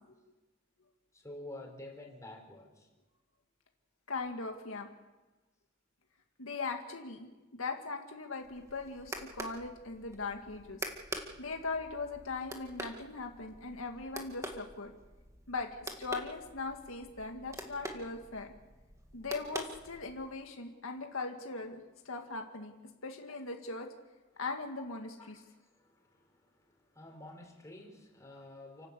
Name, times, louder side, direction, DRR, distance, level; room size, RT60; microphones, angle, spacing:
voice 1, 1.1-2.9 25.2-28.9, left 1 dB, 15° left, 1 dB, 4.5 m, -50 dB
voice 2, 4.1-4.9 6.4-10.8 11.4-14.9 15.5-18.5 19.1-22.7 23.0-23.9 24.4-25.4, left 3 dB, 75° left, 3 dB, 2.1 m, -39 dB
sound 1, 8.4-20.3, right 1 dB, 15° right, 2.0 m, -46 dB
29.5 x 12.5 x 8.4 m, 1.2 s
head